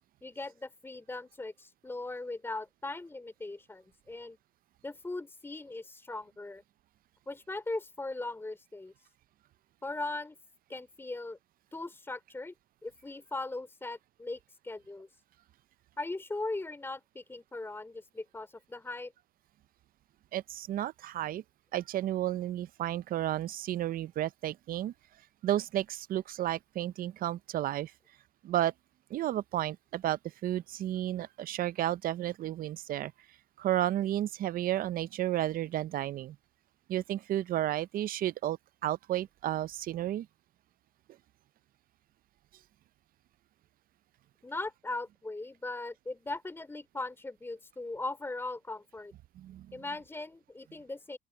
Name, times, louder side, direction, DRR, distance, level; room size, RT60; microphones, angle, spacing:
voice 1, 0.2-4.4 4.8-6.6 7.3-8.9 9.8-10.4 10.7-11.4 11.7-12.5 12.8-15.1 16.0-19.1 44.4-49.1 49.7-51.2, left 2 dB, 15° left, 3.8 m, -39 dB
voice 2, 20.3-21.4 21.7-24.9 25.4-27.9 28.4-28.7 29.1-33.1 33.6-36.4 36.9-40.3 49.4-49.8, right 13 dB, 60° right, 0.6 m, -32 dB
open air
cardioid pair, 110°, 17 cm